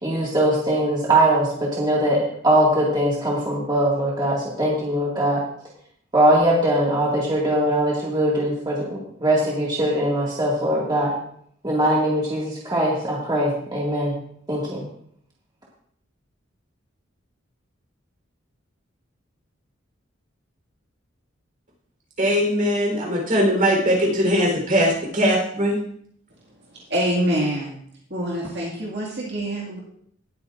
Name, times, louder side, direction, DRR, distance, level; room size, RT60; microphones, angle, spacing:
voice 1, 0.0-2.2 2.4-5.4 6.1-11.1 11.6-14.1 14.5-14.8, right 1 dB, 20° right, -5 dB, 2.0 m, -21 dB
voice 2, 22.2-25.8, equal, 40° right, -1 dB, 3.9 m, -20 dB
voice 3, 26.7-27.8 28.1-29.8, equal, 55° right, -4 dB, 2.1 m, -25 dB
18.5 x 8.3 x 2.6 m, 0.66 s
head